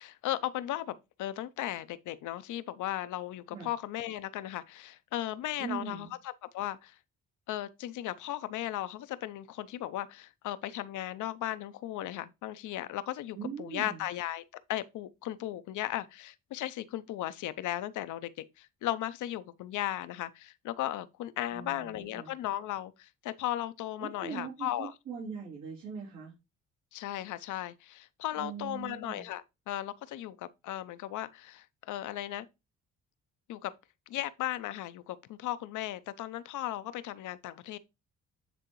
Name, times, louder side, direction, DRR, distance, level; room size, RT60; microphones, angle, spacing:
voice 1, 0.0-6.1 6.5-7.0 7.5-14.4 14.7-18.3 18.6-24.9 26.9-32.5 33.5-33.7 34.1-37.8, left 13 dB, 80° left, 0.6 m, -36 dB
voice 2, 5.6-6.1 13.3-14.1 21.5-22.3 24.0-26.3 28.4-29.3, right 6 dB, 80° right, 2.7 m, -41 dB
8.9 x 3.8 x 3.0 m
cardioid pair, 90°, 30 cm